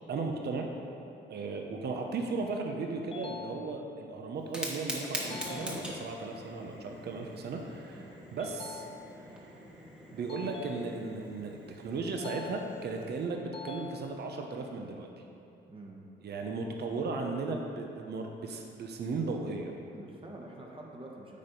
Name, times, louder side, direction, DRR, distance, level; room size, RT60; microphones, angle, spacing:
voice 1, 0.1-0.7 1.3-8.8 10.1-15.1 16.2-19.7, right 3 dB, 55° right, 2 dB, 0.8 m, -36 dB
sound 1, 3.1-4.1 5.3-6.3 8.4-9.4 10.3-11.4 12.2-13.1 13.5-14.5, left 6 dB, 30° left, 0.4 m, -47 dB
Fire, 4.4-13.2, equal, 5° right, 1.3 m, -43 dB
voice 2, 15.7-16.1 19.9-21.4, right 2 dB, 25° right, -2 dB, 1.2 m, -47 dB
8.5 x 4.2 x 5.2 m, 2.7 s
cardioid pair, 90°, 20 cm